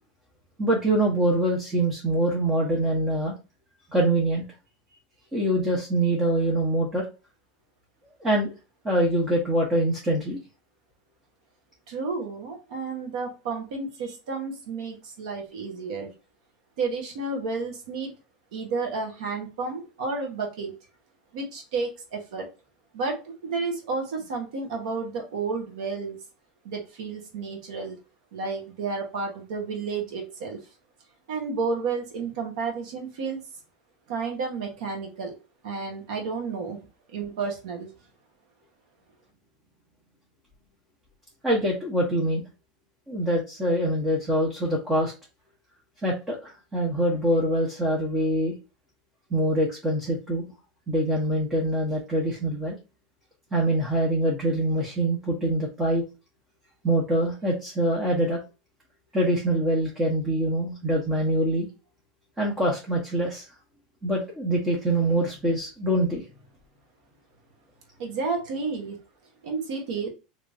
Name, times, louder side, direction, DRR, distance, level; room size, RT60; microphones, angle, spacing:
voice 1, 0.6-3.4 3.9-4.5 5.3-7.1 8.2-8.5 8.8-10.4 41.4-42.4 43.1-45.1 46.0-48.5 49.3-50.4 50.9-52.8 53.5-56.0 56.8-58.4 59.1-61.7 62.4-63.5 64.0-66.2, right 1 dB, 15° right, -3 dB, 0.9 m, -24 dB
voice 2, 11.9-16.1 16.8-18.1 18.5-20.7 21.3-22.4 22.9-26.2 26.6-28.0 28.3-30.6 31.3-33.4 34.1-35.3 35.6-36.8 37.1-37.9 68.0-69.0 69.4-70.1, right 4 dB, 80° right, 2 dB, 1.3 m, -31 dB
3.4 x 3.1 x 2.6 m, 0.30 s
supercardioid pair, 150°, 4 cm